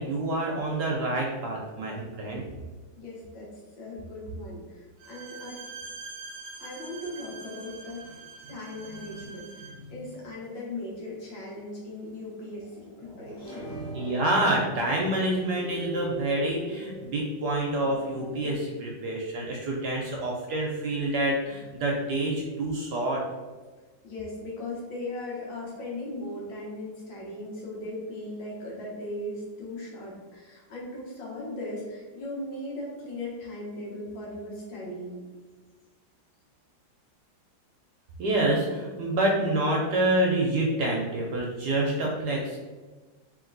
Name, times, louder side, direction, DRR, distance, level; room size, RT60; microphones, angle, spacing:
voice 1, 0.0-2.4 9.0-9.2 9.6-9.9 13.1-23.2 38.2-42.6, right 1 dB, 65° right, -1 dB, 1.1 m, -27 dB
voice 2, 3.0-3.5 3.8-5.6 6.6-8.2 8.5-13.8 24.0-35.2, left 1 dB, 70° left, -4 dB, 1.9 m, -38 dB
Bowed string instrument, 5.0-9.8, right 4 dB, 85° right, 1.4 m, -44 dB
sound 1, 13.4-18.5, left 1 dB, 40° left, 1.4 m, -41 dB
3.6 x 3.2 x 3.8 m, 1.3 s
omnidirectional pair, 2.2 m